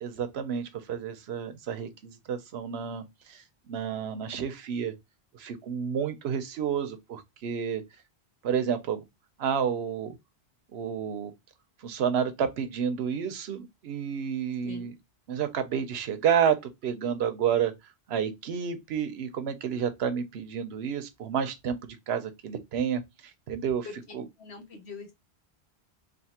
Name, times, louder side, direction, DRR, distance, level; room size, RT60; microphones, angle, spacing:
voice 1, 0.0-4.9 5.3-7.8 8.4-9.0 9.4-10.1 10.7-11.3 11.8-14.9 15.3-17.7 18.1-23.0 23.5-23.9 24.1-24.2, right 8 dB, 70° right, 0.9 m, -30 dB
voice 2, 24.4-25.1, left 4 dB, 75° left, 1.2 m, -42 dB
3.3 x 2.5 x 2.8 m
omnidirectional pair, 1.1 m